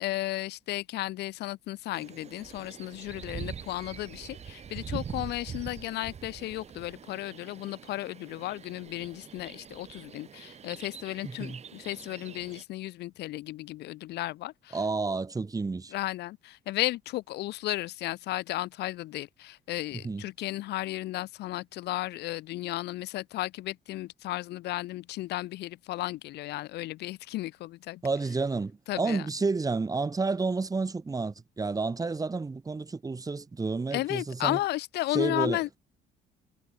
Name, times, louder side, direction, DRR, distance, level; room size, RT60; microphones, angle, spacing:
voice 1, 0.0-14.8 15.9-28.0 28.9-29.3 33.9-35.8, left 16 dB, 80° left, 3.8 m, -34 dB
sound 1, 1.9-12.6, right 7 dB, 40° right, 2.4 m, -44 dB
voice 2, 14.7-15.9 20.0-20.2 28.0-34.6 35.1-35.8, right 4 dB, 20° right, 2.9 m, -30 dB
cardioid pair, 110°, 17 cm